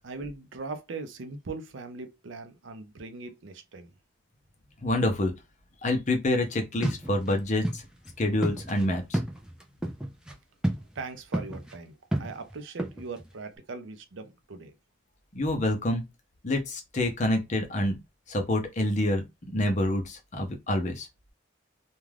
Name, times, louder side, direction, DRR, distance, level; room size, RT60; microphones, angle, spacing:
voice 1, 0.0-3.9 10.9-14.7, right 4 dB, 70° right, 0.5 m, -40 dB
voice 2, 4.8-5.3 5.8-7.8 8.2-9.2 15.3-16.0 16.4-18.0 18.3-21.1, left 1 dB, 35° left, 0.6 m, -27 dB
sound 1, 6.8-7.3 7.6-7.8 8.1-8.2 8.4-10.3 10.6-11.0 11.3-11.8 12.1-13.3, right 1 dB, 5° right, 0.3 m, -31 dB
2.4 x 2.2 x 3.2 m
head